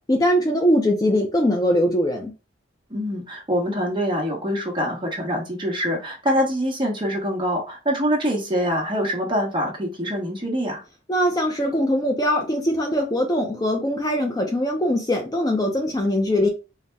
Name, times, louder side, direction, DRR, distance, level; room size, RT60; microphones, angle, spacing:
voice 1, 0.1-2.3 11.1-16.5, equal, 20° left, 0.4 m, -21 dB
voice 2, 2.9-10.8, equal, 25° right, 1.0 m, -24 dB
4.0 x 2.1 x 3.4 m
head